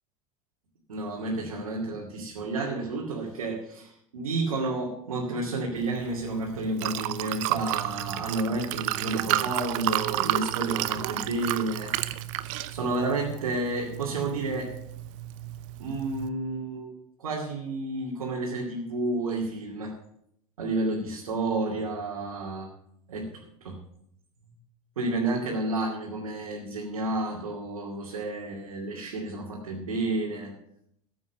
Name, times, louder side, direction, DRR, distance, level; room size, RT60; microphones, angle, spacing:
voice 1, 0.9-11.9 12.7-14.7 15.8-19.9 20.6-22.7 23.1-23.3 23.6-23.8 25.0-30.5, right 2 dB, 80° right, -3 dB, 2.5 m, -31 dB
Liquid, 5.7-16.3, right 16 dB, 65° right, 0.8 m, -32 dB
14.0 x 7.9 x 6.8 m, 0.75 s
hypercardioid pair, 80°, 18 cm